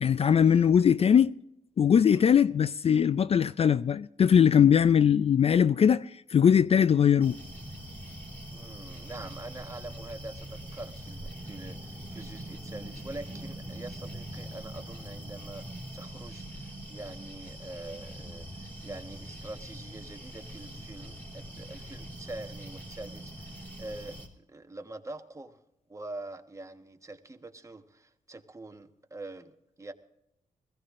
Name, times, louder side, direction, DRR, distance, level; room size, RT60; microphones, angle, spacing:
voice 1, 0.0-1.3 1.8-7.4, left 8 dB, 45° left, 0.4 m, -21 dB
voice 2, 1.9-2.3 8.5-15.7 15.9-25.6 25.9-29.9, right 2 dB, 20° right, 1.3 m, -44 dB
sound 1, 7.2-24.3, right 1 dB, 15° left, 3.3 m, -43 dB
21.0 x 16.0 x 2.5 m
cardioid pair, 80°, 14 cm